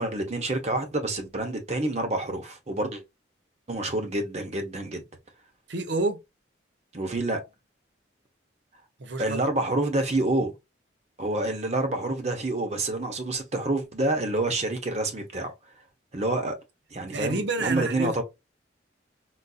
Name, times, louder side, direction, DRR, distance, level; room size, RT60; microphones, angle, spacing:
voice 1, 0.0-3.0 3.7-5.0 6.9-7.4 9.2-10.5 11.2-15.5 16.1-16.6 16.9-18.2, right 2 dB, 35° right, 0.8 m, -28 dB
voice 2, 5.7-6.2 9.0-9.4 17.1-18.2, right 2 dB, 65° right, 0.7 m, -29 dB
4.0 x 2.6 x 2.3 m
head